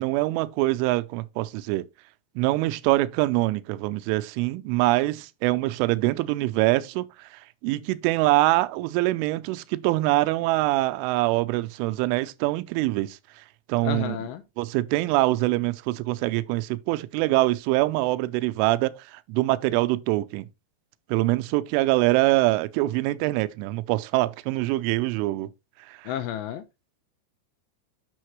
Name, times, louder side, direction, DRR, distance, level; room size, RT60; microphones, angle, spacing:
voice 1, 0.0-1.8 2.4-13.2 13.7-14.2 14.6-20.5 21.1-25.5 25.9-26.1, right 19 dB, 85° right, 3.1 m, -24 dB
voice 2, 13.8-14.4 26.1-26.6, left 11 dB, 85° left, 2.6 m, -31 dB
9.4 x 6.4 x 3.1 m
omnidirectional pair, 5.5 m